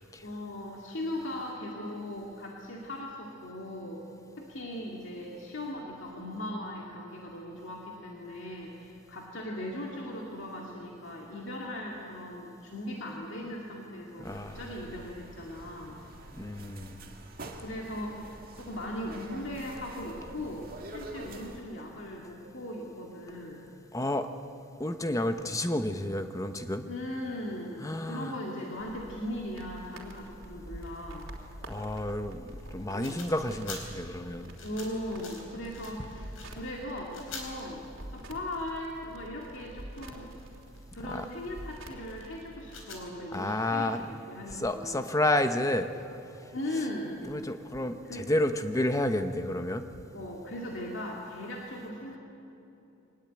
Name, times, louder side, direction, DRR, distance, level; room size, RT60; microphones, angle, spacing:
voice 1, 0.2-4.0 4.4-16.0 17.6-23.7 26.8-31.3 32.9-33.2 34.6-37.8 38.1-40.3 40.9-45.1 46.5-47.2 48.0-48.3 50.1-52.2, left 1 dB, 60° left, -2 dB, 2.4 m, -39 dB
voice 2, 14.2-14.6 16.3-17.1 23.9-24.3 24.8-26.9 27.8-28.4 31.7-32.4 32.7-34.5 41.0-41.3 43.3-44.2 44.5-46.1 47.2-49.8, left 1 dB, 15° left, 8 dB, 1.0 m, -30 dB
sound 1, 14.2-21.6, right 2 dB, 45° right, 2.0 m, -46 dB
sound 2, 28.8-42.8, right 1 dB, 70° right, 3.1 m, -47 dB
sound 3, 32.5-37.8 38.2-41.4 41.9-43.4, left 4 dB, 80° left, 4.6 m, -47 dB
23.5 x 19.5 x 9.1 m, 2.9 s
head